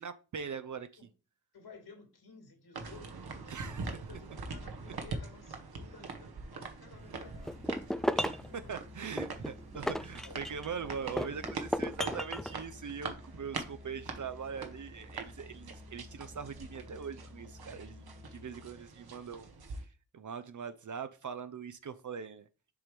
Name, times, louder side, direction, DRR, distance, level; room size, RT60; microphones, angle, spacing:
voice 1, 0.0-0.9 3.5-3.9 8.1-8.4 8.7-11.4 11.8-19.9 20.1-22.5, right 6 dB, 50° right, 0.8 m, -42 dB
voice 2, 1.5-7.7 8.5-8.8 10.2-10.5 11.2-11.7, left 4 dB, 70° left, 2.8 m, -55 dB
sound 1, 2.7-19.8, right 4 dB, 65° right, 1.4 m, -44 dB
Musical instrument, 7.0-18.9, left 2 dB, 15° right, 1.1 m, -53 dB
sound 2, 7.5-8.5 9.2-10.7 11.2-12.5, equal, ahead, 0.4 m, -34 dB
7.0 x 3.0 x 5.2 m
supercardioid pair, 45°, 40 cm